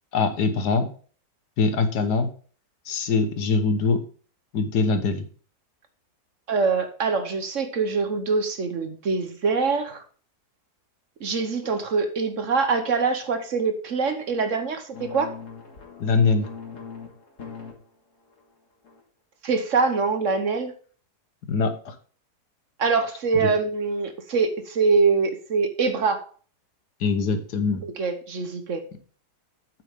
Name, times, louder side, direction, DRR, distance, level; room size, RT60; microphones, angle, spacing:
voice 1, 0.1-0.9 1.6-2.3 2.9-4.0 4.5-5.3 16.0-16.5 21.5-22.0 23.4-23.5 27.0-27.8, left 4 dB, 80° left, 8 dB, 1.7 m, -23 dB
voice 2, 6.5-10.0 11.2-15.3 19.4-20.7 22.8-26.3 27.8-28.8, right 4 dB, 55° right, 8 dB, 1.3 m, -24 dB
sound 1, 14.9-17.8 18.2-18.5 18.8-19.0, left 5 dB, 50° left, 1.9 m, -41 dB
9.1 x 7.6 x 3.6 m, 0.42 s
omnidirectional pair, 1.7 m